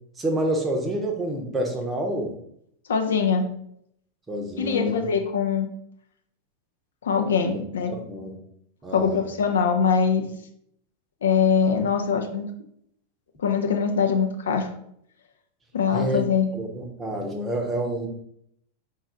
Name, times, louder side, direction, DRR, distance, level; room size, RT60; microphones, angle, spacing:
voice 1, 0.2-2.3 4.3-5.1 7.5-7.6 8.1-8.3 8.8-9.2 15.9-16.2 16.5-18.1, right 1 dB, 15° right, 2 dB, 0.7 m, -28 dB
voice 2, 2.9-3.4 4.6-5.7 7.0-7.9 8.9-10.3 11.2-12.5 13.4-14.7 15.7-16.5, left 6 dB, 65° left, 5 dB, 0.4 m, -22 dB
4.0 x 2.4 x 3.8 m, 0.71 s
figure-of-eight pair, 90°, 0 cm